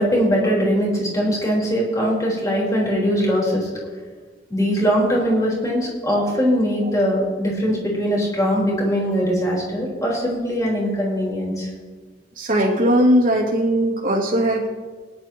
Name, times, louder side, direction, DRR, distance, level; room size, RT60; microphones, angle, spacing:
voice 1, 0.0-3.7 4.5-11.7, equal, 20° left, -4 dB, 4.3 m, -21 dB
voice 2, 12.4-14.7, equal, 50° right, -4 dB, 2.6 m, -18 dB
20.5 x 11.5 x 3.0 m, 1.4 s
head